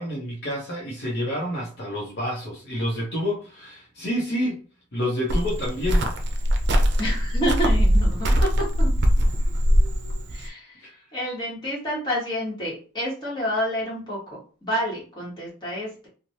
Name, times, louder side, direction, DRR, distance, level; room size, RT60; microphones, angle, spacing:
voice 1, 0.0-4.6 4.9-6.0 8.3-8.4 10.8-11.0, equal, 55° left, -4 dB, 0.8 m, -28 dB
Cricket, 5.3-10.5, equal, 55° right, 0.5 m, -21 dB
voice 2, 7.0-8.9 9.6-14.2 14.6-16.1, equal, 20° left, -6 dB, 1.3 m, -29 dB
3.1 x 2.2 x 2.7 m, 0.40 s
head